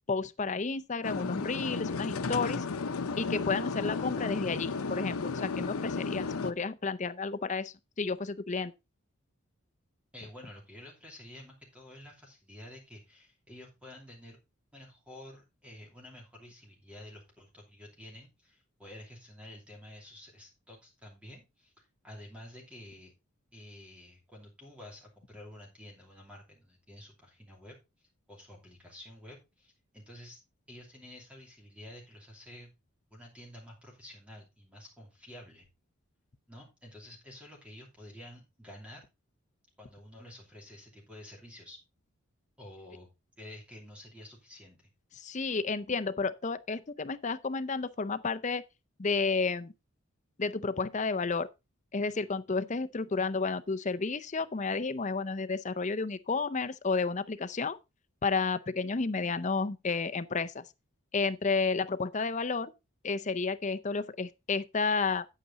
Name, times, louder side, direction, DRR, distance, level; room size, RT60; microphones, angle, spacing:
voice 1, 0.1-2.6 3.2-8.7 45.1-48.6 49.0-49.7 50.4-51.5 51.9-57.8 58.2-60.6 61.1-62.7 63.0-65.3, left 4 dB, 35° left, 0.5 m, -31 dB
sound 1, 1.0-6.5, left 4 dB, 85° left, 0.7 m, -33 dB
voice 2, 10.1-14.4 14.7-23.1 23.5-30.4 30.7-32.7 33.1-35.7 36.5-39.0 39.8-41.8 42.6-43.1 43.4-44.9, left 1 dB, 5° right, 2.8 m, -50 dB
8.9 x 8.3 x 4.0 m
head